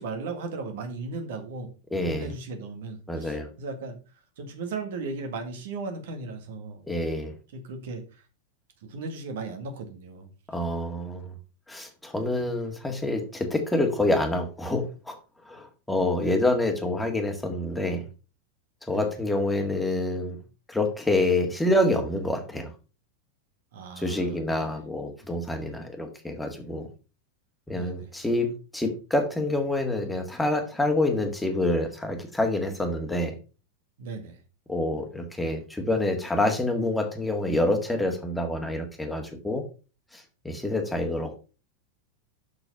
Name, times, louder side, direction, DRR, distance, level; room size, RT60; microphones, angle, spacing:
voice 1, 0.0-1.7 2.1-4.0 4.4-6.8 7.5-8.2 8.9-10.3 16.2-16.4 18.9-19.1 23.7-24.6 27.7-28.1 34.0-34.4, right 3 dB, 55° right, 6 dB, 1.8 m, -36 dB
voice 2, 1.9-2.3 3.1-3.5 6.9-7.3 10.5-11.3 11.7-15.2 15.4-18.1 18.9-20.4 20.7-22.7 24.0-26.9 27.7-33.3 34.7-39.6 40.1-41.3, left 1 dB, 5° left, 4 dB, 1.9 m, -27 dB
7.0 x 6.6 x 5.5 m, 0.33 s
figure-of-eight pair, 90°, 0 cm